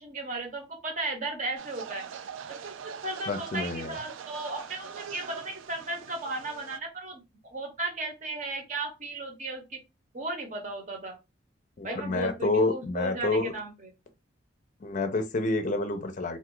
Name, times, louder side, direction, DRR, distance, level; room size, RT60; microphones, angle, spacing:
voice 1, 0.0-2.0 2.5-9.8 10.1-11.2 11.8-13.9, right 2 dB, 40° right, 0.8 m, -35 dB
sound 1, 1.6-6.8, right 7 dB, 85° right, 0.3 m, -42 dB
voice 2, 3.3-4.0 11.8-13.5 14.8-16.4, left 2 dB, 40° left, 0.4 m, -28 dB
2.5 x 2.3 x 3.7 m
head